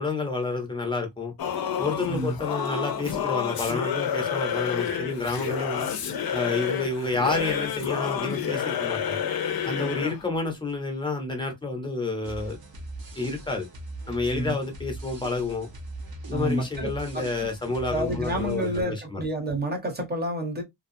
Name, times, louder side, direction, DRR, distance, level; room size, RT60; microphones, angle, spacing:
voice 1, 0.0-1.3 1.8-5.9 6.3-9.2 9.6-12.6 13.2-13.7 14.1-15.7 16.3-19.2, left 3 dB, 10° left, 0.7 m, -29 dB
Singing / Musical instrument, 1.4-10.3, left 8 dB, 60° left, 0.5 m, -29 dB
sound 1, 12.2-18.8, right 2 dB, 60° right, 0.8 m, -40 dB
voice 2, 16.3-17.5 17.9-20.6, right 1 dB, 25° right, 0.9 m, -29 dB
2.6 x 2.3 x 2.6 m
wide cardioid pair, 175°, 42 cm